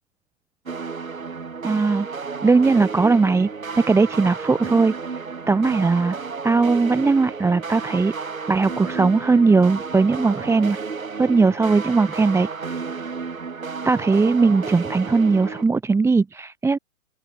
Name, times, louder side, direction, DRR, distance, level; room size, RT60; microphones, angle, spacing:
sound 1, 0.7-15.6, right 5 dB, 80° right, 3.1 m, -32 dB
voice 1, 1.6-2.1 2.4-3.5 3.9-4.9 5.5-6.1 6.4-8.1 8.5-10.8 11.2-12.5 13.8-16.8, right 4 dB, 5° right, 1.6 m, -19 dB
open air
figure-of-eight pair, 120°, 40 cm